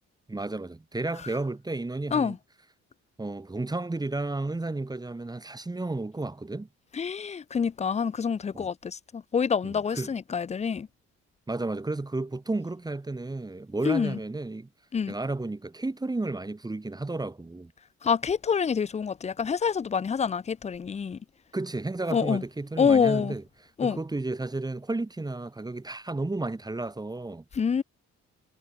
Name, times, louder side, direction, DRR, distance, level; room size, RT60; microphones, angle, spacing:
voice 1, 0.3-2.4 3.2-6.7 8.5-8.7 9.6-10.1 11.5-14.7 15.1-17.7 21.5-23.4 23.8-27.4, right 2 dB, 15° right, 1.1 m, -32 dB
voice 2, 6.9-10.9 13.8-14.2 14.9-15.1 18.0-21.2 22.1-22.4 22.8-23.3 23.8-24.0 27.5-27.8, left 6 dB, 25° left, 0.5 m, -26 dB
cardioid pair, 90°, 30 cm